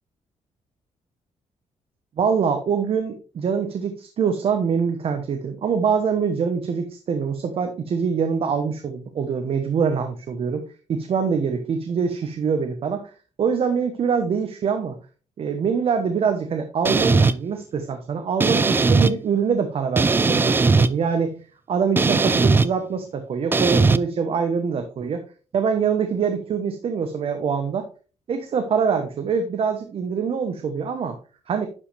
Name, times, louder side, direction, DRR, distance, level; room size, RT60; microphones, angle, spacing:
voice 1, 2.2-10.6 10.9-13.1 13.4-15.0 15.4-21.4 21.7-25.2 25.5-27.9 28.3-31.2 31.5-31.7, right 6 dB, 55° right, 6 dB, 1.1 m, -24 dB
sound 1, 16.8-17.3 18.4-19.1 20.0-20.9 22.0-22.7 23.5-24.0, right 4 dB, 20° right, 0.3 m, -18 dB
11.0 x 5.3 x 3.4 m, 0.35 s
cardioid pair, 140°, 12 cm